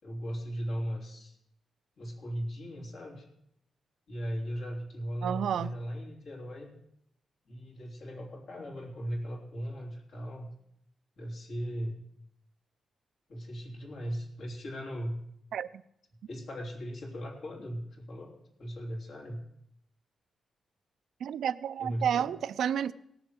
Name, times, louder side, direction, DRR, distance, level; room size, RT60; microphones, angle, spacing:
voice 1, 0.0-1.4 2.0-3.3 4.1-6.7 7.4-10.5 11.2-12.0 13.3-15.2 16.3-19.4 21.8-22.3, equal, 65° left, 3.2 m, -38 dB
voice 2, 5.2-5.8 15.5-15.8 21.2-22.9, right 9 dB, 85° right, 0.5 m, -31 dB
17.5 x 7.0 x 6.5 m
wide cardioid pair, 135°, 0 cm